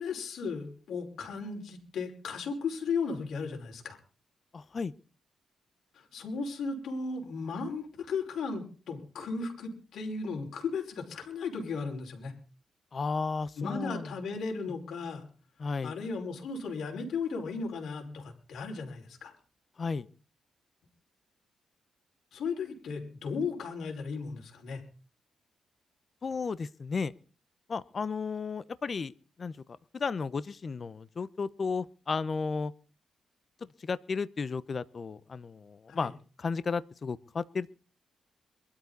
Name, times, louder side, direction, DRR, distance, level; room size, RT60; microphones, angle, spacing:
voice 1, 0.0-4.0 6.1-12.3 13.6-15.2 15.8-19.3 22.3-24.8 35.9-36.1, left 4 dB, 75° left, 2 dB, 5.3 m, -35 dB
voice 2, 4.5-4.9 12.9-14.1 15.6-15.9 19.8-20.1 26.2-27.1 27.7-29.1 29.4-29.5 29.9-32.7 33.8-36.1 36.4-37.7, left 4 dB, 40° left, 17 dB, 0.9 m, -33 dB
23.0 x 13.0 x 4.1 m, 0.39 s
cardioid pair, 110°, 0 cm